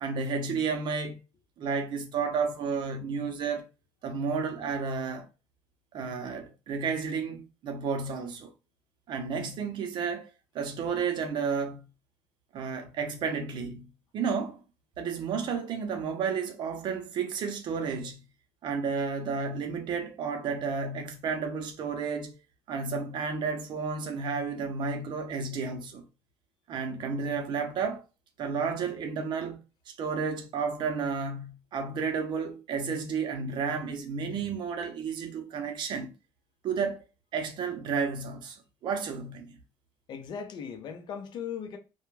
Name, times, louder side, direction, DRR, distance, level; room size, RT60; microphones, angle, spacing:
voice 1, 0.0-1.2 1.6-3.6 4.0-5.3 5.9-8.5 9.1-10.3 10.5-11.8 12.5-13.9 14.1-14.6 15.0-18.2 18.6-22.3 22.7-26.0 26.7-28.0 28.4-36.1 36.6-37.0 37.3-38.6 38.8-39.5, right 5 dB, 65° right, 0.6 m, -32 dB
voice 2, 40.1-41.8, left 7 dB, 60° left, 0.6 m, -38 dB
2.2 x 2.2 x 3.0 m
cardioid pair, 105°, 9 cm